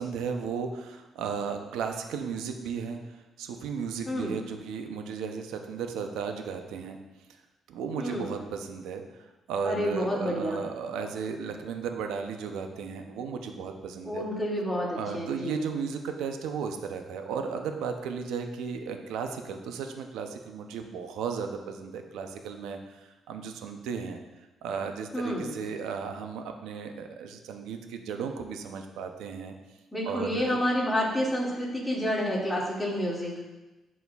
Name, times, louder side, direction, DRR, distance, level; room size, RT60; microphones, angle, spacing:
voice 1, 0.0-7.0 7.7-14.2 15.0-24.2 24.6-29.5 30.0-30.6, right 6 dB, 90° right, 5 dB, 0.6 m, -35 dB
voice 2, 8.0-8.3 9.6-10.6 14.0-15.6 25.1-25.5 29.9-33.3, equal, 10° left, -5 dB, 2.1 m, -29 dB
11.0 x 4.2 x 2.3 m, 1.1 s
cardioid pair, 90°, 0 cm